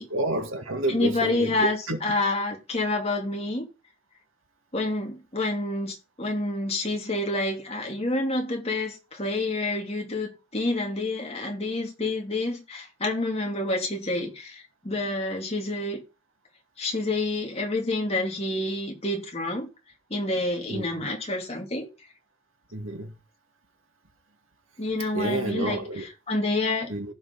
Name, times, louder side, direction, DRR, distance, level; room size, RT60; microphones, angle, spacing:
voice 1, 0.0-2.0 20.7-20.8 22.7-23.1 25.1-26.1 26.9-27.1, right 1 dB, 75° right, 2.0 m, -29 dB
voice 2, 0.9-3.7 4.7-16.0 16.8-19.7 20.1-21.9 24.8-26.9, left 2 dB, 30° left, 2.8 m, -28 dB
15.5 x 5.4 x 4.0 m
head